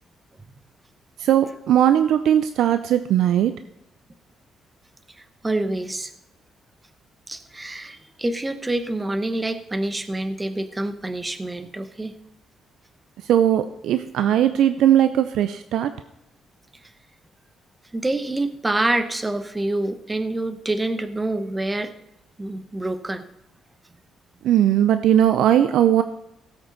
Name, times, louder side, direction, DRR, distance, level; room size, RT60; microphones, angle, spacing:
voice 1, 1.2-3.5 13.2-15.9 24.4-26.0, right 10 dB, 80° right, 10 dB, 0.5 m, -18 dB
voice 2, 5.2-6.1 7.3-12.1 17.9-21.9 22.4-23.2, right 2 dB, 15° right, 10 dB, 1.0 m, -26 dB
16.5 x 7.9 x 4.0 m, 0.87 s
cardioid pair, 90°, 0 cm